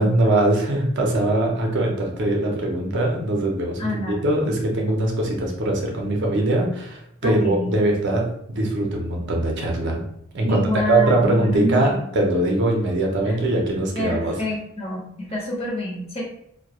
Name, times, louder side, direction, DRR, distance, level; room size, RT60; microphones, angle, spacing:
voice 1, 0.0-10.0 10.3-14.3, right 1 dB, 55° right, 0 dB, 0.5 m, -22 dB
voice 2, 3.8-4.2 7.2-7.8 10.4-12.1 13.3-13.4 13.9-16.2, left 1 dB, 30° left, -3 dB, 0.7 m, -28 dB
2.2 x 2.1 x 2.9 m, 0.74 s
head